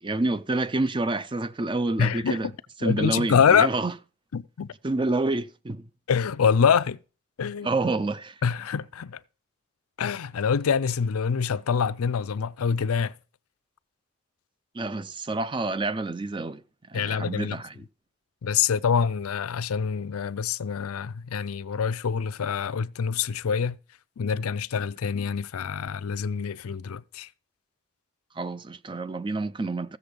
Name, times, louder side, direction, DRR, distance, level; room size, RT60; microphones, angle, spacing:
voice 1, 0.0-2.5 2.8-3.9 4.8-5.9 7.6-8.4 14.7-16.6 16.9-17.8 28.3-30.0, right 2 dB, 20° right, 0.5 m, -28 dB
voice 2, 2.0-2.5 2.8-3.7 4.3-4.7 6.1-7.0 7.4-7.7 8.4-9.2 10.0-13.1 16.9-17.6 18.4-23.8 24.2-27.3, left 6 dB, 85° left, 0.5 m, -25 dB
15.0 x 6.8 x 5.2 m
head